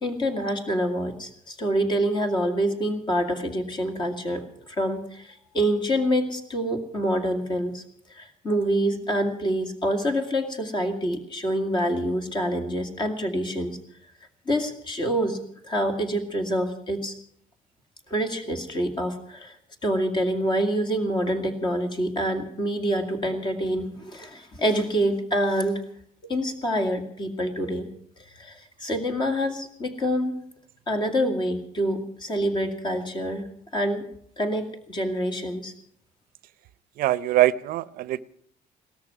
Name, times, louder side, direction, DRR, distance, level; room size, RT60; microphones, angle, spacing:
voice 1, 0.0-7.8 8.1-13.8 14.5-17.2 18.1-19.6 19.8-25.8 26.2-27.9 28.3-30.4 30.9-33.5 33.7-34.0 34.4-35.7, equal, 30° left, 6 dB, 2.3 m, -26 dB
voice 2, 37.0-38.2, right 14 dB, 75° right, 18 dB, 0.6 m, -22 dB
17.5 x 13.5 x 6.0 m, 0.66 s
cardioid pair, 135°, 15 cm